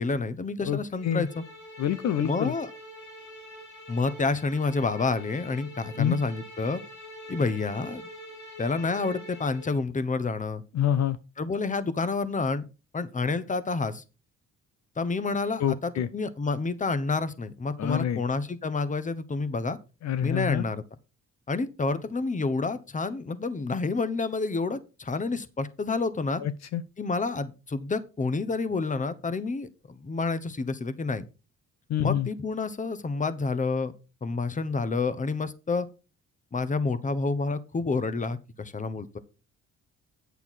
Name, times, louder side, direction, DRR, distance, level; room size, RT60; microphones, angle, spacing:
voice 1, 0.0-1.4 2.2-2.7 3.9-6.8 7.3-8.0 8.6-10.6 11.4-12.7 12.9-14.0 15.0-19.8 20.2-20.8 21.5-26.4 27.0-31.2 32.0-33.9 34.2-35.9 36.5-39.2, left 3 dB, 25° left, 1.0 m, -29 dB
voice 2, 0.6-1.3 1.8-2.5 6.0-6.2 10.7-11.2 15.6-16.1 17.8-18.2 20.0-20.6 26.4-26.8 31.9-32.3, left 10 dB, 60° left, 0.7 m, -27 dB
sound 1, 0.9-9.8, equal, 85° left, 4.7 m, -45 dB
9.0 x 6.9 x 4.2 m
cardioid pair, 90°, 30 cm